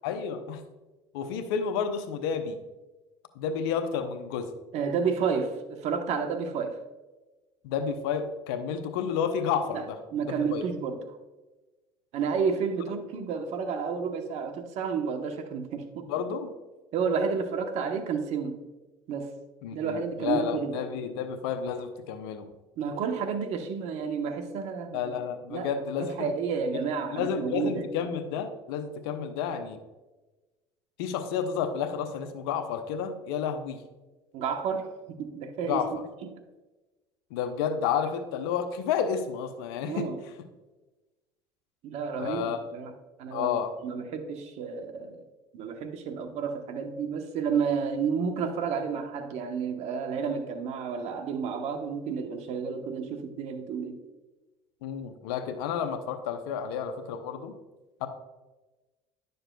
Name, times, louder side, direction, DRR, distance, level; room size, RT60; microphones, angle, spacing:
voice 1, 0.0-0.6 1.1-2.6 3.4-4.5 7.6-10.0 10.2-10.6 16.1-16.5 19.6-22.5 24.9-26.3 27.1-29.8 31.0-33.8 35.7-35.8 37.3-40.1 42.2-42.6 43.3-43.7 54.8-57.5 58.0-58.1, left 7 dB, 80° left, 8 dB, 0.7 m, -31 dB
voice 2, 4.7-6.8 9.7-9.8 10.1-11.0 12.1-16.1 16.9-18.6 19.1-19.3 19.7-20.8 22.8-25.1 25.5-27.8 34.3-35.9 36.3-36.4 39.8-40.2 41.8-42.9 43.2-43.6 43.8-45.2 45.5-54.0, right 6 dB, 60° right, 7 dB, 1.0 m, -31 dB
10.0 x 6.7 x 2.2 m, 1.1 s
supercardioid pair, 80°, 12 cm